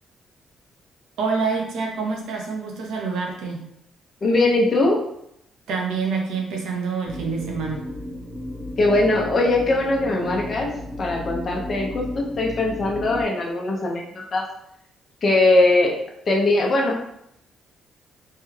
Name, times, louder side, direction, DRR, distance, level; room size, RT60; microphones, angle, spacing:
voice 1, 1.2-3.6 5.7-7.9, right 4 dB, 85° right, 0 dB, 0.7 m, -26 dB
voice 2, 4.2-5.0 8.8-10.7 11.0-14.4 15.2-15.9 16.3-17.0, left 2 dB, 45° left, -1 dB, 0.8 m, -20 dB
sound 1, 7.0-13.2, left 1 dB, 55° right, 1.1 m, -34 dB
3.3 x 2.3 x 3.2 m, 0.77 s
cardioid pair, 90°, 0 cm